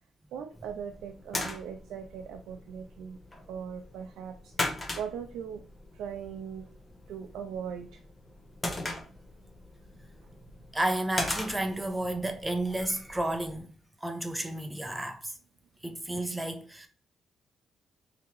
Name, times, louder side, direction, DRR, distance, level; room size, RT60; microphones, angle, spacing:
voice 1, 0.3-3.2 3.5-5.6 5.9-6.7 7.1-8.0 10.4-10.6, right 7 dB, 90° right, 0.3 m, -40 dB
sound 1, 0.5-13.6, left 2 dB, 20° left, 0.8 m, -40 dB
voice 2, 10.7-15.4 15.8-16.9, right 1 dB, 10° right, 0.5 m, -32 dB
3.5 x 2.8 x 3.0 m
cardioid pair, 120°, 0 cm